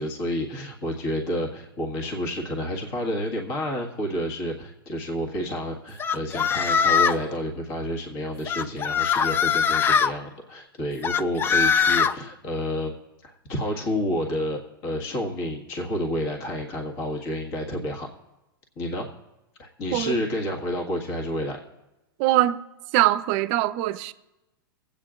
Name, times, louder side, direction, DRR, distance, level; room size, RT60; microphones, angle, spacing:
voice 1, 0.0-12.9 13.2-18.1 18.8-19.1 19.6-21.6, equal, 45° left, 1.8 m, -30 dB
sound 1, 6.0-7.3 8.5-10.1 11.0-12.1, left 6 dB, 20° left, 0.3 m, -21 dB
voice 2, 22.2-22.6 22.9-24.1, right 15 dB, 45° right, 0.5 m, -22 dB
22.0 x 8.7 x 2.5 m
hypercardioid pair, 115°, 12 cm